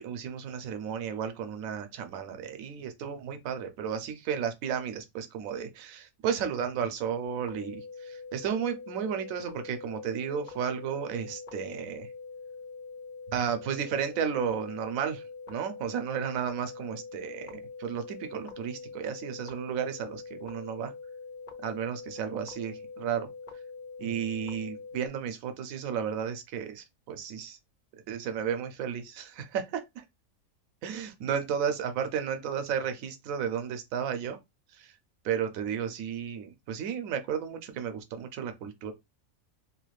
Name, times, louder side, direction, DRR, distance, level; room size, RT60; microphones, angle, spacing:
voice 1, 0.0-12.1 13.3-20.9 21.6-23.3 24.0-27.6 28.1-30.0 30.8-34.4 34.7-34.9 35.2-38.9, right 8 dB, 85° right, 1.0 m, -33 dB
sound 1, 7.2-25.1, left 4 dB, 60° left, 0.5 m, -44 dB
2.9 x 2.4 x 3.1 m
omnidirectional pair, 1.4 m